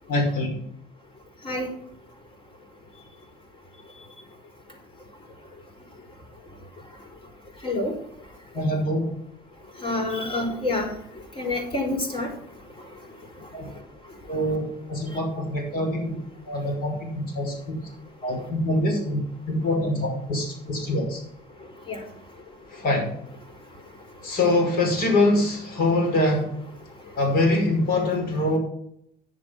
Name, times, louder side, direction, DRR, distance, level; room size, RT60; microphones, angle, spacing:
voice 1, 0.1-0.6 8.5-9.1 13.5-13.6 14.3-16.1 16.5-17.9 18.2-21.2 22.7-23.1 24.2-26.4 27.2-28.6, left 1 dB, 60° left, 0 dB, 5.7 m, -24 dB
voice 2, 9.8-10.9 11.4-12.3 21.9-22.0, left 2 dB, 30° left, 3 dB, 4.1 m, -27 dB
9.7 x 7.7 x 6.1 m, 0.72 s
cardioid pair, 110°, 17 cm